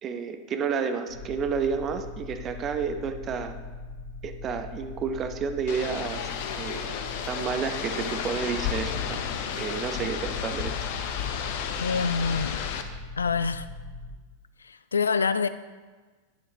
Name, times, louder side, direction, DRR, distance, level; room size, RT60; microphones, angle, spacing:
voice 1, 0.0-3.6 4.2-6.3 6.5-7.0 7.3-9.2 9.6-10.7, right 6 dB, 30° right, 0.8 m, -30 dB
sound 1, 1.1-14.1, left 3 dB, 90° left, 3.1 m, -41 dB
sound 2, 5.7-12.8, left 8 dB, 50° left, 0.8 m, -32 dB
voice 2, 11.8-12.6 13.2-13.7 14.6-15.5, left 5 dB, 75° left, 0.4 m, -26 dB
12.5 x 9.1 x 3.0 m
figure-of-eight pair, 90°, 0 cm